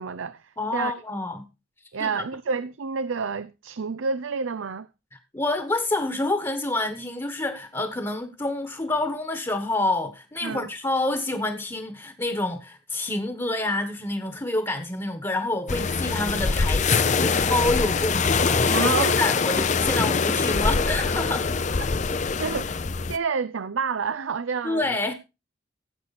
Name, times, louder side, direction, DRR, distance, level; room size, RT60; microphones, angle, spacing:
voice 1, 0.0-0.9 1.9-4.9 10.4-10.7 18.7-19.2 22.4-22.7 23.1-25.0, right 5 dB, 85° right, 0.5 m, -29 dB
voice 2, 0.6-1.4 2.0-2.2 5.1-21.5 24.6-25.1, left 2 dB, 20° left, 1.3 m, -28 dB
sound 1, 15.7-23.2, left 4 dB, 40° left, 0.6 m, -23 dB
16.0 x 7.9 x 4.2 m
head